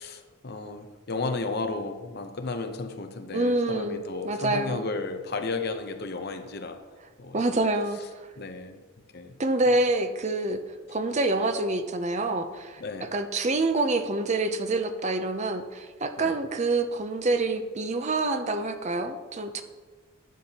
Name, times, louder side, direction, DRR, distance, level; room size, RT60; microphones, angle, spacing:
voice 1, 0.0-6.8 7.2-7.7 8.4-8.8 9.1-9.3 12.8-13.1 16.2-16.4, left 3 dB, 45° left, 7 dB, 0.7 m, -33 dB
voice 2, 3.3-4.9 7.3-8.0 9.4-10.6 10.9-12.8 13.1-19.6, right 2 dB, 30° right, 8 dB, 0.6 m, -26 dB
12.0 x 8.9 x 2.9 m, 1.4 s
head